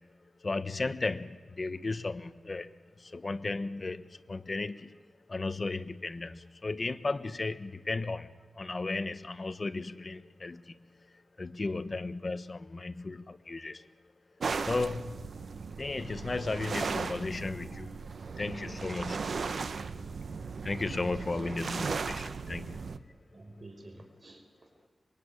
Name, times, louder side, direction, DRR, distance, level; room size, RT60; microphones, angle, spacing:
voice 1, 0.4-2.7 3.0-5.0 5.3-10.8 11.4-13.9 14.6-15.3 15.8-18.0 18.4-19.2 20.6-22.8, left 3 dB, 40° left, 12 dB, 1.1 m, -35 dB
sound 1, 14.4-23.0, right 5 dB, 75° right, 1.1 m, -37 dB
voice 2, 21.0-21.6 23.3-24.9, right 2 dB, 50° right, 5 dB, 5.1 m, -50 dB
25.0 x 22.5 x 9.9 m, 1.3 s
wide cardioid pair, 95°, 0 cm